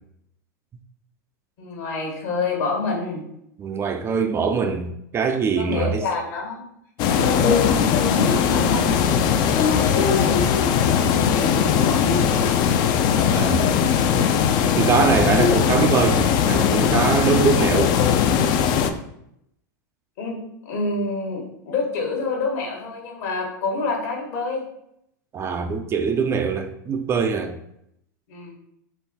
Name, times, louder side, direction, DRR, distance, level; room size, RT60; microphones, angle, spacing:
voice 1, 1.6-3.2 5.6-6.6 7.1-12.4 20.2-20.4 20.6-24.6 28.3-28.5, left 3 dB, 60° left, 1 dB, 1.3 m, -27 dB
voice 2, 3.6-6.0 13.3-13.7 14.8-18.0 25.3-27.6, right 5 dB, 25° right, 7 dB, 0.3 m, -22 dB
sound 1, 7.0-18.9, left 7 dB, 45° left, 0.4 m, -19 dB
3.9 x 2.1 x 4.0 m, 0.76 s
hypercardioid pair, 105°, 10 cm